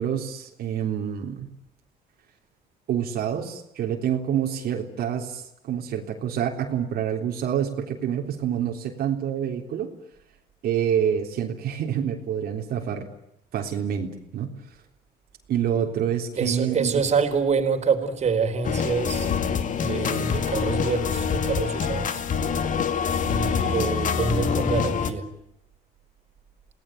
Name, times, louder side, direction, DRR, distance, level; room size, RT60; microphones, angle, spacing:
voice 1, 0.0-1.5 2.9-9.9 10.6-13.1 13.5-14.5 15.5-16.9, right 9 dB, 65° right, 3.6 m, -27 dB
voice 2, 16.4-19.4 19.8-22.2 23.2-25.3, right 5 dB, 40° right, 4.3 m, -26 dB
sound 1, 18.6-25.1, left 7 dB, 50° left, 2.3 m, -25 dB
29.0 x 18.5 x 9.3 m
cardioid pair, 110°, 17 cm